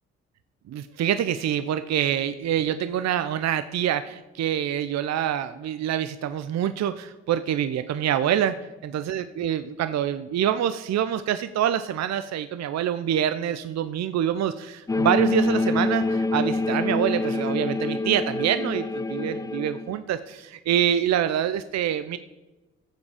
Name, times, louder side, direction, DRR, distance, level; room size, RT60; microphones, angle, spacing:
voice 1, 0.7-8.5 8.8-22.2, right 10 dB, 55° right, 12 dB, 0.6 m, -26 dB
sound 1, 14.9-20.0, left 3 dB, 10° left, 0.3 m, -26 dB
14.5 x 7.2 x 5.0 m, 1.1 s
hypercardioid pair, 45°, 31 cm